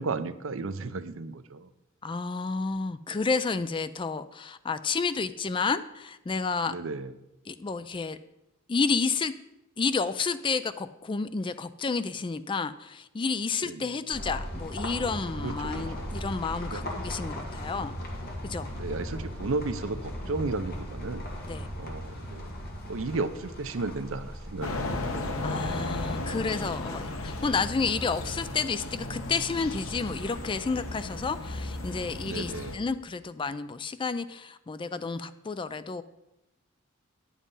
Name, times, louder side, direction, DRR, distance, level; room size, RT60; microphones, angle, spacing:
voice 1, 0.0-1.7 6.7-7.1 13.6-13.9 15.4-16.2 16.7-16.8 18.7-21.3 21.8-22.5 22.8-24.8 32.2-32.8, right 3 dB, 70° right, 12 dB, 0.6 m, -34 dB
voice 2, 2.0-6.8 7.5-8.2 8.7-9.3 9.8-18.0 18.4-18.7 21.5-21.7 25.4-36.0, left 4 dB, 25° left, 13 dB, 0.3 m, -30 dB
sound 1, 14.1-30.5, equal, 50° left, 1.9 m, -39 dB
sound 2, 24.6-32.7, left 2 dB, 85° left, 1.1 m, -35 dB
9.8 x 7.3 x 5.4 m, 0.91 s
head